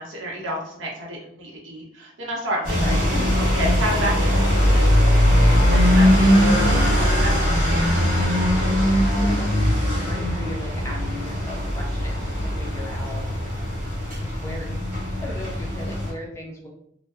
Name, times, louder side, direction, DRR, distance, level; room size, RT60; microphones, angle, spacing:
voice 1, 0.0-3.0 3.4-4.9 5.5-9.2 12.5-12.9, equal, 75° right, -2 dB, 0.7 m, -32 dB
sound 1, 2.6-16.1, equal, 45° right, 1.0 m, -20 dB
voice 2, 2.7-3.5 5.8-6.1 8.9-9.5 10.1-13.7 14.2-14.7 15.2-16.7, equal, 15° left, -3 dB, 0.4 m, -37 dB
2.6 x 2.2 x 2.3 m, 0.69 s
head